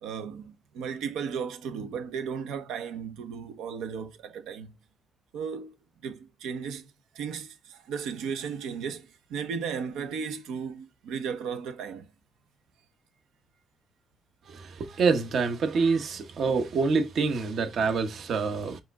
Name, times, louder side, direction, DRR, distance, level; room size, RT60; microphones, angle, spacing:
voice 1, 0.0-4.7 5.3-5.8 6.0-12.1, right 6 dB, 90° right, 0.7 m, -35 dB
voice 2, 14.8-18.8, right 4 dB, 60° right, 0.9 m, -26 dB
4.8 x 3.1 x 3.5 m
cardioid pair, 90°, 0 cm